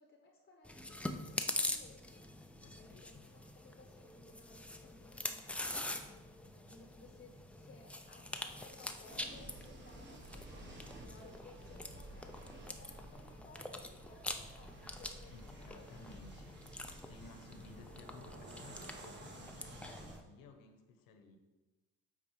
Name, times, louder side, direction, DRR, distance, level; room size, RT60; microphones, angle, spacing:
voice 1, 0.0-2.2 2.8-16.2, left 3 dB, 30° left, 2 dB, 0.8 m, -60 dB
Chewing mastication, 0.6-20.2, left 1 dB, 5° left, 0.4 m, -45 dB
voice 2, 2.6-3.3 15.3-16.6 17.1-21.4, left 3 dB, 75° left, 6 dB, 1.1 m, -57 dB
sound 1, 9.0-20.2, right 1 dB, 30° right, 1.2 m, -53 dB
8.6 x 4.0 x 4.8 m, 1.2 s
cardioid pair, 125°, 34 cm